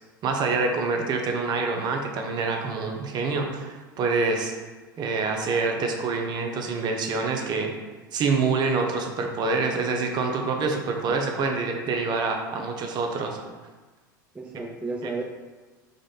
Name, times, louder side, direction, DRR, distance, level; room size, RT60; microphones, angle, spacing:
voice 1, 0.2-4.5 5.0-7.7 8.1-13.4 15.0-15.1, right 4 dB, 40° right, 3 dB, 0.8 m, -26 dB
voice 2, 14.3-15.2, right 3 dB, 10° right, 1 dB, 0.4 m, -34 dB
5.0 x 2.5 x 4.0 m, 1.3 s
hypercardioid pair, 85°, 11 cm